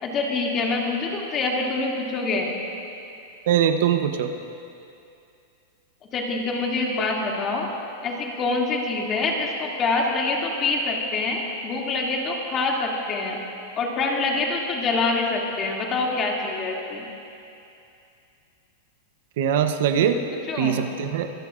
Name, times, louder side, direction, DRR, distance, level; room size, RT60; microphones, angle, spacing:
voice 1, 0.0-2.6 6.1-7.7 8.0-13.4 13.8-17.0 20.0-20.1 20.5-20.8, left 3 dB, 30° left, -2 dB, 2.5 m, -25 dB
voice 2, 3.5-4.3 19.4-20.2 20.6-21.3, right 9 dB, 65° right, 7 dB, 0.9 m, -22 dB
25.5 x 17.0 x 2.5 m, 2.6 s
supercardioid pair, 135°, 0 cm